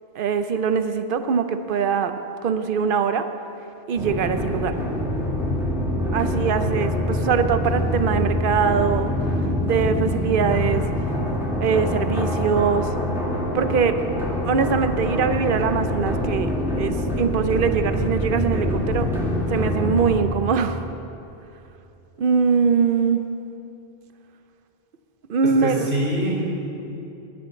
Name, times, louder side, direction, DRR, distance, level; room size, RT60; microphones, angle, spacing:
voice 1, 0.2-2.1 2.4-3.3 3.9-4.8 6.1-9.1 9.6-10.8 11.6-12.9 13.5-14.0 14.4-19.1 19.5-20.8 22.2-23.2 25.3-25.9, right 6 dB, 60° right, 10 dB, 0.8 m, -22 dB
sound 1, 4.0-20.1, left 1 dB, ahead, 1.7 m, -25 dB
voice 2, 25.4-26.6, equal, 90° right, -8 dB, 3.8 m, -25 dB
10.0 x 8.2 x 8.2 m, 2.8 s
omnidirectional pair, 1.1 m